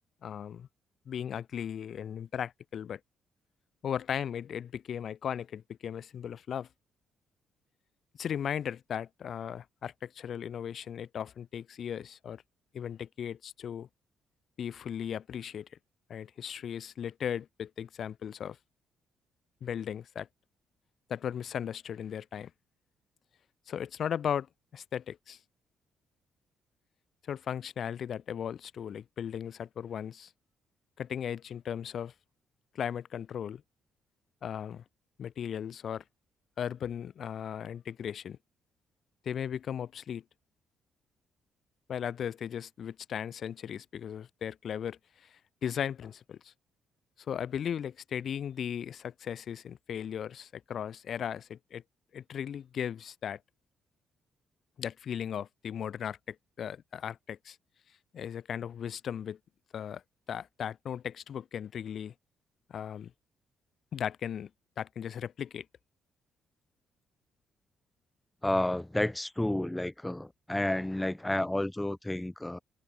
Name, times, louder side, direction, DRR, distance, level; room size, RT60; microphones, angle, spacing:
voice 1, 0.2-0.7 1.1-3.0 3.8-6.7 8.2-12.4 12.7-13.9 14.6-15.7 16.1-18.6 19.6-20.3 21.1-22.5 23.7-24.5 24.7-25.4 27.3-30.3 31.0-32.1 32.7-33.6 34.4-34.8 35.2-36.0 36.6-38.4 39.2-40.2 41.9-46.5 47.3-51.8 52.1-53.4 54.8-57.6 58.1-59.4 59.7-60.0 60.3-62.1 62.7-63.1 63.9-64.5 64.8-65.6, left 8 dB, 60° left, 1.2 m, -37 dB
voice 2, 68.4-72.6, left 1 dB, 10° left, 2.9 m, -31 dB
cardioid pair, 90°, 0 cm